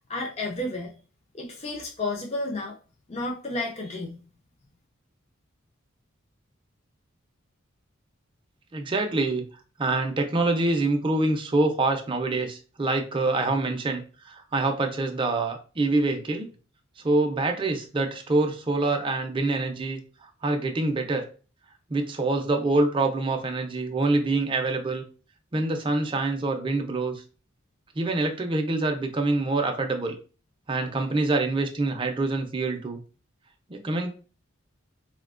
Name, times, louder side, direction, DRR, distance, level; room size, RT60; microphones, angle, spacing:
voice 1, 0.1-0.9 1.3-2.8 3.1-4.2, left 2 dB, 30° left, 0 dB, 0.5 m, -31 dB
voice 2, 8.7-9.4 9.8-16.5 17.0-20.0 20.4-21.2 21.9-25.0 25.5-27.2 28.0-30.1 30.7-33.0 33.7-34.1, right 2 dB, 25° right, 4 dB, 0.4 m, -25 dB
4.0 x 2.2 x 2.4 m, 0.36 s
head